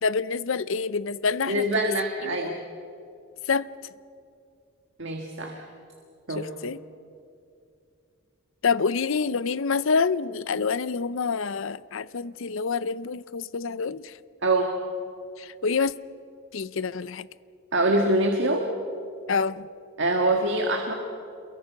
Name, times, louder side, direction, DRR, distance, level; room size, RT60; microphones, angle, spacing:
voice 1, 0.0-1.9 2.2-2.5 3.5-3.7 6.4-6.8 8.6-14.1 15.4-15.9 16.5-17.3 19.3-19.7, left 5 dB, 65° left, 17 dB, 0.6 m, -27 dB
voice 2, 1.5-2.6 5.0-5.6 6.3-6.5 14.4-14.7 17.7-18.7 20.0-20.9, right 1 dB, 55° right, 2 dB, 1.9 m, -24 dB
28.0 x 22.5 x 6.0 m, 2.5 s
head